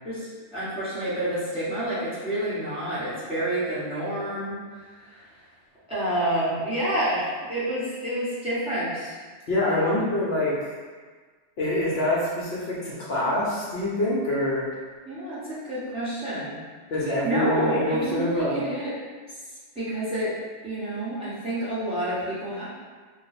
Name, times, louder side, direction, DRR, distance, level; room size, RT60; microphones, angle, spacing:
voice 1, 0.0-5.2 5.9-9.2 15.1-16.6 17.2-18.9 19.7-20.4 20.6-22.7, right 1 dB, 5° right, -11 dB, 0.9 m, -29 dB
voice 2, 9.5-10.7 11.6-14.7 16.9-18.6, left 1 dB, 65° left, -7 dB, 0.9 m, -25 dB
2.6 x 2.2 x 4.0 m, 1.5 s
omnidirectional pair, 1.2 m